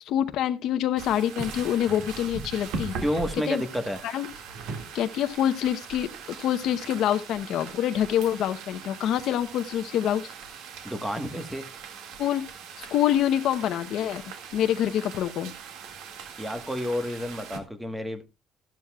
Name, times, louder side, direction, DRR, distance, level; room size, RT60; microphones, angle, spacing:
voice 1, 0.0-2.9 3.5-3.6 4.0-4.3 4.9-10.3 12.2-12.4 12.8-14.2 14.5-15.5, left 10 dB, 65° left, 0.8 m, -26 dB
sound 1, 1.0-17.6, right 5 dB, 85° right, 1.9 m, -40 dB
voice 2, 3.0-4.0 10.8-11.7 16.4-18.2, equal, 5° right, 1.2 m, -30 dB
13.5 x 12.0 x 2.3 m
cardioid pair, 160°, 0 cm